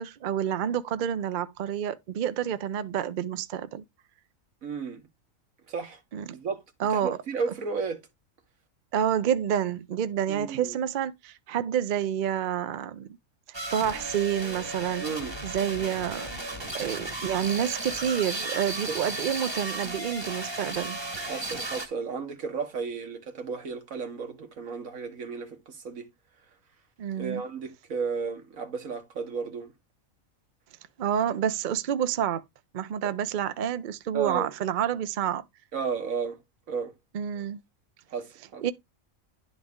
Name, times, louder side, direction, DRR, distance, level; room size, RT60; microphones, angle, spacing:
voice 1, 0.0-3.8 6.1-6.2 6.8-7.2 8.9-13.1 13.7-15.0 15.4-16.4 16.7-21.0 27.0-27.4 31.0-32.4 32.7-35.4 37.1-37.6 38.6-38.7, right 9 dB, 60° right, 0.5 m, -28 dB
voice 2, 4.6-5.0 5.7-6.0 6.3-6.6 6.9-8.0 10.3-10.8 15.0-15.4 18.9-19.0 21.3-26.1 27.1-29.7 33.0-33.1 34.1-34.5 35.7-36.4 36.7-36.9 38.1-38.6, right 5 dB, 80° right, 1.7 m, -33 dB
sound 1, 13.5-21.9, right 2 dB, 20° right, 1.1 m, -35 dB
10.5 x 4.1 x 3.5 m
omnidirectional pair, 1.4 m